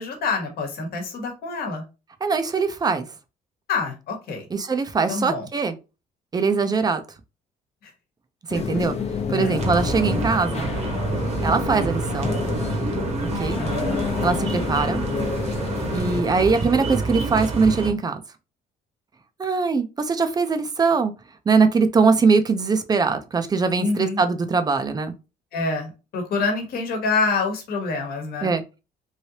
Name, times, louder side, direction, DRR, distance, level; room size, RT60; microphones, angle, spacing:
voice 1, 0.0-1.8 3.7-4.5 5.1-5.5 7.8-7.9 9.4-9.5 13.6-14.0 23.8-24.2 25.5-28.5, left 4 dB, 65° left, 1.2 m, -26 dB
voice 2, 2.2-3.1 4.5-5.7 6.3-7.0 8.5-8.9 9.3-10.7 11.4-12.4 13.4-13.6 14.2-15.0 15.9-18.2 19.4-21.1 21.5-25.1 28.4-28.8, right 4 dB, 25° right, 0.5 m, -21 dB
sound 1, 8.5-16.2, left 5 dB, 40° left, 0.7 m, -28 dB
sound 2, 9.6-17.9, right 3 dB, 40° right, 1.0 m, -28 dB
3.2 x 2.7 x 2.8 m
cardioid pair, 110°, 17 cm